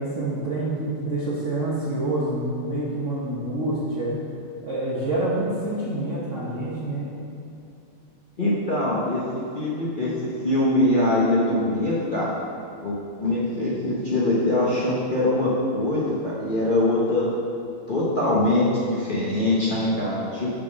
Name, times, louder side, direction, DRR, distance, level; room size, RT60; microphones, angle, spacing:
voice 1, 0.0-4.2 4.6-7.1, right 2 dB, 50° right, -8 dB, 1.0 m, -27 dB
voice 2, 8.4-12.3 12.8-17.3 17.9-20.5, left 1 dB, 50° left, -7 dB, 0.6 m, -23 dB
6.4 x 4.2 x 6.1 m, 2.7 s
omnidirectional pair, 2.3 m